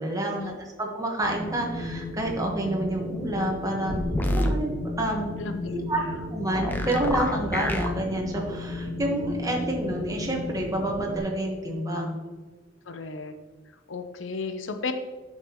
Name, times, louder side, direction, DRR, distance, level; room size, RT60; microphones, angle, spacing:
voice 1, 0.0-5.3 5.7-6.0 6.3-12.2, right 1 dB, 20° right, 0 dB, 1.3 m, -29 dB
Wind, 1.2-11.2, left 1 dB, 35° right, 2.0 m, -35 dB
sound 1, 3.9-4.5 6.5-7.9, equal, 10° left, 0.6 m, -27 dB
voice 2, 5.4-6.2 12.9-13.3 13.9-14.9, left 4 dB, 90° left, 8 dB, 0.7 m, -34 dB
10.0 x 5.8 x 3.0 m, 1.4 s
head